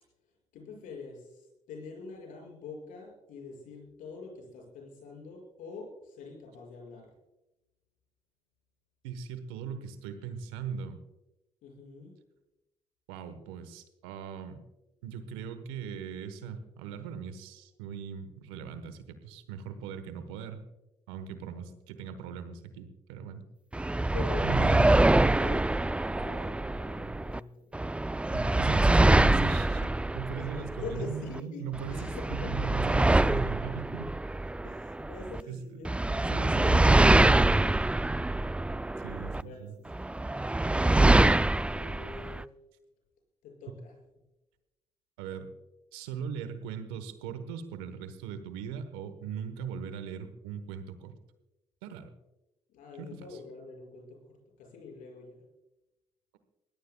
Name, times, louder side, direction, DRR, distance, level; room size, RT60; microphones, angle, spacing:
voice 1, 0.5-7.1 11.6-12.1 24.1-27.7 30.5-31.6 31.9-32.7 34.6-37.3 39.0-40.0 41.5-42.5 43.4-43.9 52.7-55.4, left 4 dB, 80° left, 0 dB, 5.8 m, -45 dB
voice 2, 9.0-11.0 13.1-14.6 15.0-20.6 21.1-23.4 24.4-24.9 28.3-34.2 35.5-35.8 36.3-37.5 39.0-39.7 45.2-45.5 45.9-51.2 51.8-52.1 53.0-53.1, right 7 dB, 90° right, 11 dB, 1.2 m, -39 dB
sound 1, 23.7-27.4 27.7-31.4 31.8-35.4 35.8-39.4 39.9-42.4, right 2 dB, 10° right, 0.3 m, -25 dB
22.5 x 17.0 x 2.3 m, 0.98 s
hypercardioid pair, 45°, 13 cm